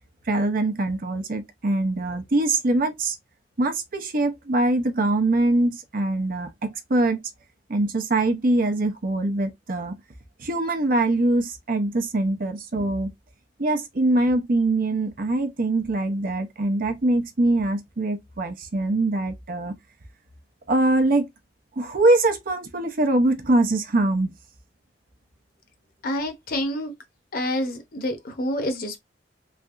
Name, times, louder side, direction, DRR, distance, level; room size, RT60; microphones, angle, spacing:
voice 1, 0.3-3.2 3.6-7.2 7.7-9.9 10.4-13.1 13.6-19.7 20.7-21.3 21.8-24.3, right 2 dB, 50° right, 0.7 m, -23 dB
voice 2, 26.0-26.9 27.3-29.0, left 1 dB, 55° left, 0.8 m, -27 dB
3.3 x 2.7 x 2.5 m
head